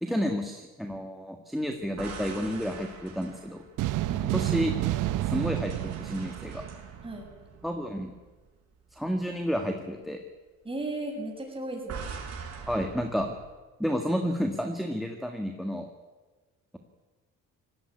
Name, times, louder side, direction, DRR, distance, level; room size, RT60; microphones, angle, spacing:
voice 1, 0.0-3.6 4.3-4.7 5.3-6.6 7.6-8.1 8.9-10.2 12.7-13.3 13.8-15.9, equal, ahead, 5 dB, 1.8 m, -31 dB
sound 1, 1.8-4.7 5.2-8.6 8.9-9.2 11.9-13.5, right 5 dB, 60° right, 6.0 m, -43 dB
sound 2, 3.8-7.2, right 15 dB, 90° right, 0.8 m, -30 dB
voice 2, 10.6-12.1, right 2 dB, 20° right, 1 dB, 7.3 m, -36 dB
19.0 x 16.5 x 9.7 m, 1.3 s
cardioid pair, 90°, 30 cm